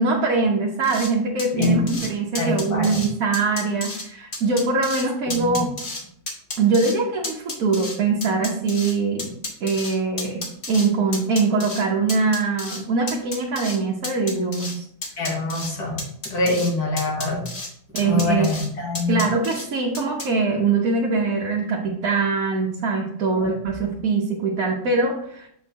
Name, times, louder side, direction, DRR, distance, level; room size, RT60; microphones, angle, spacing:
voice 1, 0.0-5.7 6.6-9.4 9.6-14.9 16.5-16.6 17.9-18.5 19.1-25.5, right 4 dB, 70° right, -2 dB, 1.3 m, -22 dB
sound 1, 0.8-1.1 1.4-2.1 2.4-3.1 3.3-4.0 4.3-5.0 5.3-6.0 6.3-6.9 7.2-8.9 9.2-10.9 11.1-11.8 12.1-12.8 13.1-13.8 14.0-14.8 15.0-15.7 16.0-16.7 17.0-17.7 18.0-18.7 18.9-19.7 19.9-20.3, left 2 dB, 45° left, 1.6 m, -32 dB
voice 2, 1.5-2.0 2.4-3.0 5.3-5.6 15.2-16.0 16.3-17.5 18.0-19.2, left 2 dB, 80° left, -1 dB, 2.2 m, -24 dB
7.1 x 4.3 x 3.5 m, 0.68 s
omnidirectional pair, 1.7 m